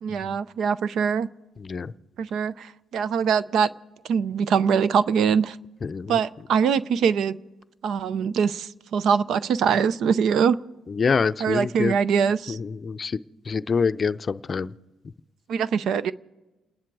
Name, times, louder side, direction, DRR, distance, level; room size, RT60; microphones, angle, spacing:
voice 1, 0.0-1.3 2.2-3.7 4.0-5.6 6.1-7.4 7.8-10.6 11.4-12.6 15.5-16.1, right 6 dB, 75° right, 0.5 m, -23 dB
voice 2, 1.6-1.9 5.8-6.1 10.9-11.9 12.5-13.2 13.5-14.7, left 5 dB, 40° left, 0.5 m, -25 dB
29.0 x 10.5 x 4.8 m
cardioid pair, 90°, 0 cm